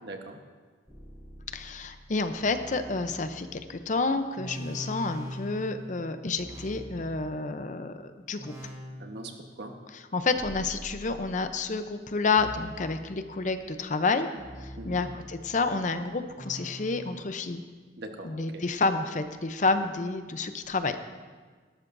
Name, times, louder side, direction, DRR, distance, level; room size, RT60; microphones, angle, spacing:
voice 1, 0.0-0.4 9.0-9.3 9.6-9.7 14.8-15.0 18.0-18.6, right 2 dB, 70° right, 4 dB, 1.2 m, -41 dB
sound 1, 0.9-7.9 8.4-9.5 10.4-11.5 12.4-13.6 14.4-17.2, equal, 25° right, 3.9 m, -44 dB
voice 2, 1.5-8.5 9.9-14.3 14.6-17.6 18.2-21.0, left 3 dB, 45° left, 9 dB, 0.6 m, -29 dB
18.0 x 12.5 x 2.6 m, 1.5 s
head